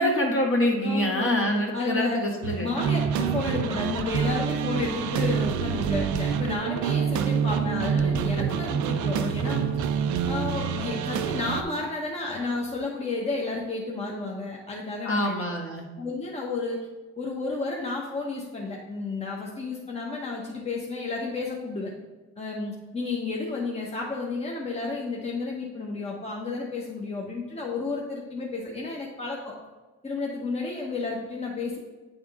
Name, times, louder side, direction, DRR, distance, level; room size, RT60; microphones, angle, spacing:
voice 1, 0.0-2.7 15.0-15.9, equal, 45° left, -1 dB, 1.6 m, -25 dB
voice 2, 0.8-1.5 1.7-2.2 2.6-9.7 10.3-15.3 16.0-16.9 17.2-21.9 22.4-29.5 30.0-31.8, left 3 dB, 20° left, -3 dB, 1.1 m, -31 dB
sound 1, 2.4-11.6, right 7 dB, 75° right, 0.5 m, -27 dB
8.6 x 3.6 x 3.6 m, 1.2 s
cardioid pair, 90°, 30 cm